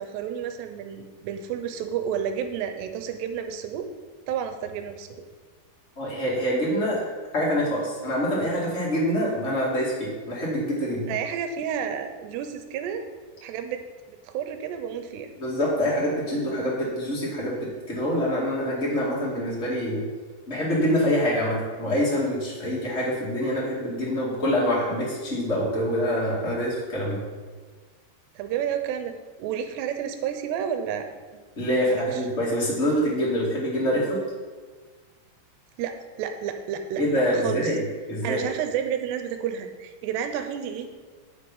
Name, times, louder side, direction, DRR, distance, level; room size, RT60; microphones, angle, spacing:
voice 1, 0.0-3.9 4.3-5.1 11.1-13.0 13.4-13.8 14.1-15.3 28.4-31.4 31.9-32.2 35.8-37.0 37.4-37.8 38.2-40.9, right 8 dB, 80° right, 7 dB, 2.7 m, -31 dB
voice 2, 5.9-7.0 7.3-11.1 15.4-17.6 17.9-20.0 20.5-27.2 31.6-34.2 37.0-37.8 38.1-38.4, equal, 30° left, -6 dB, 1.3 m, -25 dB
9.4 x 7.3 x 5.4 m, 1.5 s
omnidirectional pair, 5.3 m